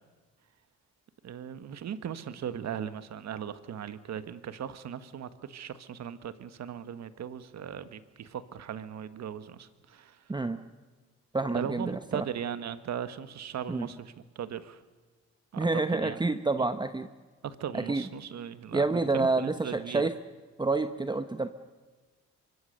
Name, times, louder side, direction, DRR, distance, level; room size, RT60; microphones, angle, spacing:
voice 1, 1.2-10.2 11.5-14.8 15.5-16.2 17.4-18.9 19.1-20.1, right 9 dB, 60° right, 12 dB, 1.5 m, -38 dB
voice 2, 11.3-12.2 13.7-13.9 15.6-17.1 17.7-18.0 18.7-20.1 20.6-21.5, right 3 dB, 15° right, 10 dB, 0.9 m, -28 dB
24.0 x 23.0 x 6.7 m, 1.3 s
cardioid pair, 90°, 30 cm